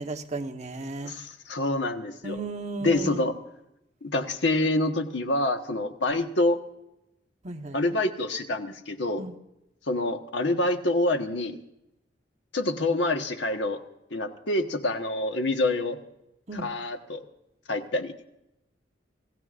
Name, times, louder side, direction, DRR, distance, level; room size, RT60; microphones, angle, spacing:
voice 1, 0.0-1.1 2.2-3.2 7.4-7.8 9.2-9.3 16.5-16.7, right 2 dB, 40° right, 4 dB, 1.2 m, -34 dB
voice 2, 1.0-2.4 2.8-3.3 4.0-6.6 7.7-9.3 9.9-11.6 12.5-13.8 14.1-16.0 16.5-17.2 17.7-18.1, left 2 dB, 75° left, 5 dB, 1.4 m, -26 dB
27.0 x 16.5 x 2.5 m, 0.87 s
head